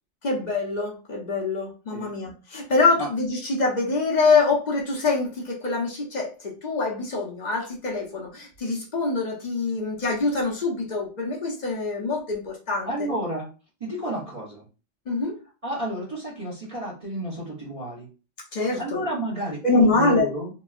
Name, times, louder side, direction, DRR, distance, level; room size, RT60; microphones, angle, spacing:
voice 1, 0.2-13.1 15.1-15.4 18.5-19.0 19.6-20.3, left 3 dB, 45° left, -1 dB, 0.7 m, -24 dB
voice 2, 12.8-13.5 13.8-14.7 15.6-18.1 18.5-20.5, right 1 dB, 30° right, -6 dB, 0.9 m, -31 dB
2.9 x 2.2 x 2.4 m, 0.33 s
omnidirectional pair, 1.2 m